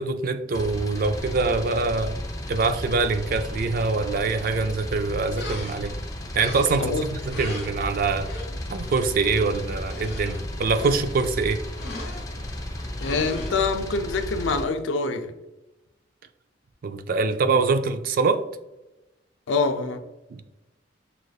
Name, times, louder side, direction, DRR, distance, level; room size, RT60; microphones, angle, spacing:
voice 1, 0.0-2.2 2.5-5.9 6.3-8.3 8.7-11.6 16.8-18.4 20.3-20.4, right 4 dB, 50° right, 0.3 m, -24 dB
sound 1, 0.5-14.6, left 1 dB, 20° left, 0.4 m, -34 dB
sound 2, 5.4-6.0 6.4-7.0 7.3-8.5 8.7-9.0 9.3-9.4 9.7-11.3 11.7-12.2 12.8-13.5, left 2 dB, 60° left, 1.3 m, -38 dB
voice 2, 13.0-15.3 19.5-20.0, left 4 dB, 80° left, 0.4 m, -25 dB
6.4 x 2.4 x 2.3 m
head